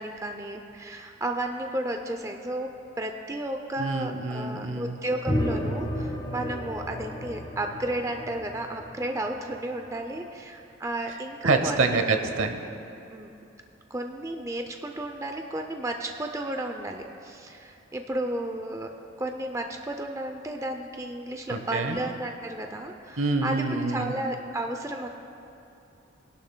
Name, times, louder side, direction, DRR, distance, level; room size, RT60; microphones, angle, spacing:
voice 1, 0.0-12.0 13.1-13.3 13.9-18.9 19.2-25.1, right 1 dB, 15° right, 4 dB, 0.4 m, -33 dB
voice 2, 3.8-5.0 11.4-12.6 21.5-22.0 23.2-24.1, right 3 dB, 75° right, 6 dB, 0.9 m, -26 dB
sound 1, 5.3-9.9, equal, 25° left, 1.1 m, -32 dB
20.0 x 11.5 x 2.2 m, 2.8 s
head